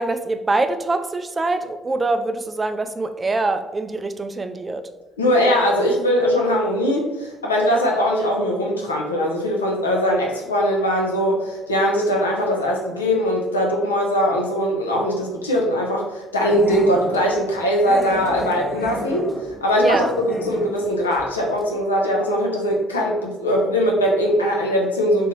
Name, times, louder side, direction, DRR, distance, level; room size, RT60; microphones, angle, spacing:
voice 1, 0.0-4.9 19.8-20.1, right 2 dB, 25° right, 9 dB, 0.3 m, -24 dB
voice 2, 5.2-19.3 19.6-25.3, equal, 85° left, -1 dB, 0.5 m, -21 dB
Growling, 16.5-17.2 17.8-20.9 21.1-21.3 21.6-21.7, equal, ahead, 0.9 m, -31 dB
3.3 x 3.0 x 3.0 m, 1.1 s
figure-of-eight pair, 50°, 0 cm